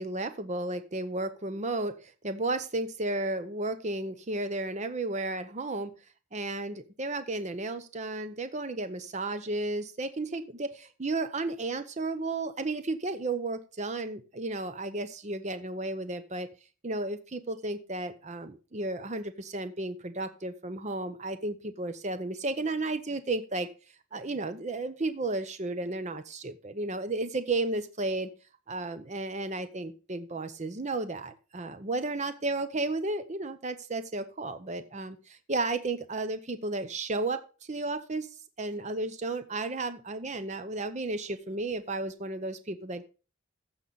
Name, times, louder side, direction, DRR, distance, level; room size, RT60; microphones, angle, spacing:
voice 1, 0.0-6.0 6.3-16.5 16.8-23.7 24.1-28.3 28.7-38.3 38.6-43.1, right 2 dB, 35° right, 11 dB, 0.7 m, -33 dB
14.5 x 5.6 x 3.9 m, 0.32 s
head